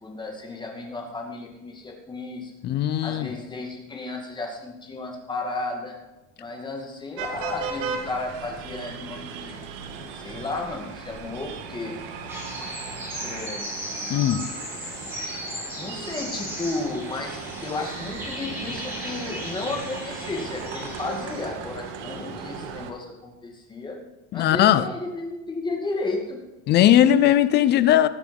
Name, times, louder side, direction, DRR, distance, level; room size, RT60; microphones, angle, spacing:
voice 1, 0.0-2.5 3.0-6.0 6.4-9.6 10.1-12.0 12.6-12.7 13.2-13.7 15.7-24.0 24.3-26.4 26.8-27.1, left 3 dB, 10° left, 2.2 m, -33 dB
voice 2, 2.6-3.3 14.1-14.5 24.3-24.9 26.7-28.1, left 11 dB, 30° left, 0.5 m, -18 dB
sound 1, 7.2-22.9, right 5 dB, 85° right, 2.2 m, -37 dB
sound 2, 12.3-21.5, equal, 5° right, 4.3 m, -36 dB
19.5 x 7.2 x 5.3 m
cardioid pair, 170°, 36 cm